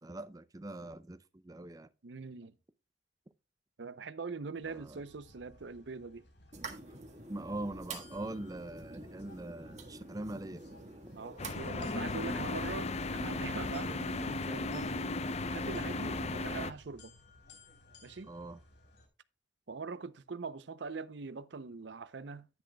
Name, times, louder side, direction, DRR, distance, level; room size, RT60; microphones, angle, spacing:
voice 1, 0.0-1.9 4.7-5.0 7.3-10.7 18.3-18.6, right 1 dB, 20° right, 0.5 m, -42 dB
voice 2, 2.0-2.6 3.8-6.3 11.1-15.2 15.5-17.1 18.0-18.3 19.7-22.5, right 4 dB, 70° right, 0.6 m, -43 dB
sound 1, 4.6-19.1, left 2 dB, 70° left, 3.6 m, -60 dB
sound 2, 6.5-12.1, right 3 dB, 40° right, 1.6 m, -47 dB
sound 3, 11.4-16.7, left 3 dB, 35° left, 0.6 m, -36 dB
10.5 x 10.0 x 2.2 m
head